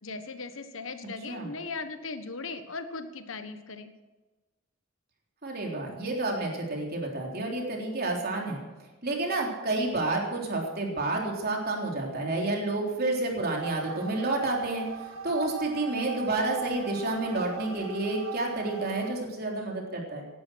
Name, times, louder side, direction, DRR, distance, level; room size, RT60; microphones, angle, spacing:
voice 1, 0.0-3.9, left 4 dB, 75° left, 9 dB, 1.3 m, -38 dB
voice 2, 5.4-8.6 9.0-14.9 15.2-20.3, right 2 dB, 50° right, 0 dB, 3.7 m, -30 dB
sound 1, 13.6-19.1, right 6 dB, 80° right, 1.5 m, -40 dB
18.0 x 11.5 x 6.3 m, 1.2 s
head